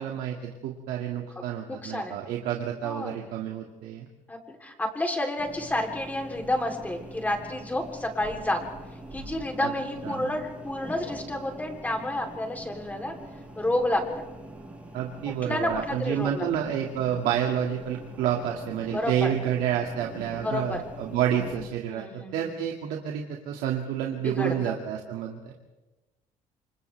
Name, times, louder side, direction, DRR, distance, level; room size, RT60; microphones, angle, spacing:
voice 1, 0.0-4.1 9.6-9.7 10.0-10.3 14.9-25.5, right 9 dB, 90° right, 0 dB, 2.3 m, -29 dB
voice 2, 1.7-2.1 2.8-3.4 4.3-8.6 9.1-13.1 13.6-14.0 15.4-16.5 17.0-17.1 18.9-19.3 20.3-20.8 21.9-22.5 24.2-24.8, left 1 dB, 10° left, 2 dB, 3.4 m, -30 dB
sound 1, 5.4-21.7, right 1 dB, 10° right, 6.5 m, -43 dB
29.0 x 26.5 x 3.5 m, 1.1 s
cardioid pair, 140°, 14 cm